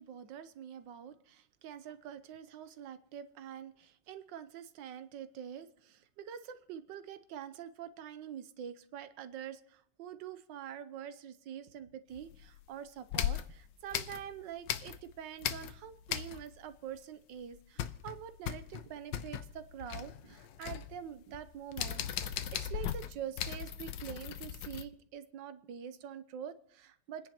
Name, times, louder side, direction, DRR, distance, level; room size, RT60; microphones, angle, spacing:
voice 1, 0.0-22.1 22.5-27.3, right 9 dB, 85° right, 11 dB, 1.4 m, -46 dB
sound 1, 12.2-12.7 13.1-15.1 15.4-16.7 17.0-17.1 17.4-24.8, left 10 dB, 85° left, 1.4 m, -38 dB
29.0 x 10.5 x 3.0 m, 0.69 s
omnidirectional pair, 2.0 m